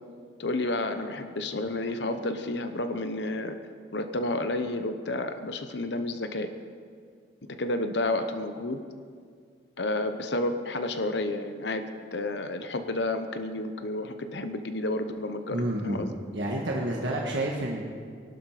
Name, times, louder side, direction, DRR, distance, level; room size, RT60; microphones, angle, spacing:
voice 1, 0.4-3.6 3.9-6.5 7.6-8.8 9.8-11.8 12.1-16.1, left 2 dB, 65° left, 8 dB, 1.0 m, -30 dB
voice 2, 15.5-16.1 16.3-17.8, right 1 dB, 70° right, -2 dB, 1.6 m, -29 dB
21.0 x 12.0 x 5.0 m, 2.1 s
head